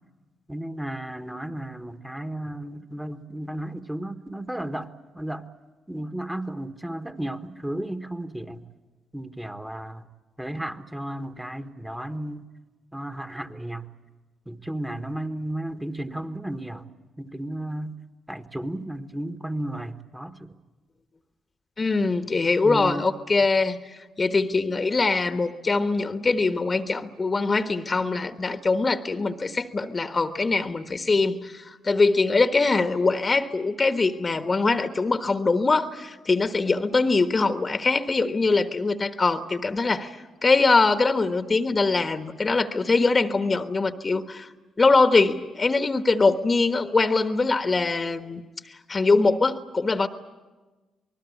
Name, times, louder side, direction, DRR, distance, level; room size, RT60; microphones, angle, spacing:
voice 1, 0.5-5.4 5.9-8.6 9.1-10.1 10.4-12.4 12.9-13.9 14.4-16.9 17.2-18.0 18.3-20.5 22.6-23.1, right 1 dB, 10° right, 7 dB, 1.6 m, -33 dB
voice 2, 21.8-23.8 24.2-40.2 40.4-44.5 44.8-48.4 48.9-50.1, left 3 dB, 35° left, 9 dB, 1.3 m, -22 dB
27.0 x 20.0 x 8.5 m, 1.2 s
hypercardioid pair, 50°, 0 cm